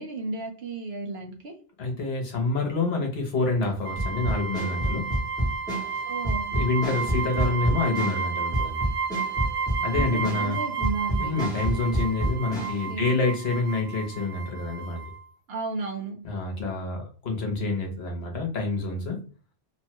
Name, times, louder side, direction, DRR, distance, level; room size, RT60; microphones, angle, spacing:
voice 1, 0.0-1.5 6.0-6.5 9.9-11.4 12.5-13.1 15.5-16.2, right 3 dB, 65° right, 1 dB, 1.0 m, -34 dB
voice 2, 1.8-5.1 6.5-8.8 9.8-10.6 11.2-15.0 16.2-19.2, left 3 dB, 65° left, 2 dB, 1.0 m, -27 dB
sound 1, 3.8-15.3, right 5 dB, 85° right, 1.2 m, -32 dB
sound 2, 4.0-12.8, right 1 dB, 5° left, 0.8 m, -29 dB
3.0 x 2.2 x 2.9 m, 0.41 s
omnidirectional pair, 1.2 m